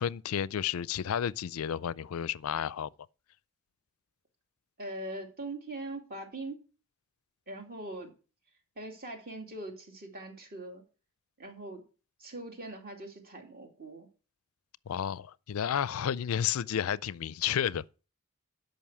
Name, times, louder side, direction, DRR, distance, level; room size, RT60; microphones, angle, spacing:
voice 1, 0.0-2.9 14.9-17.8, left 9 dB, 70° left, 0.4 m, -31 dB
voice 2, 4.8-6.6 7.5-8.1 8.8-10.8 11.4-11.8 12.2-14.1, right 2 dB, 45° right, 2.6 m, -41 dB
12.5 x 5.4 x 6.1 m
head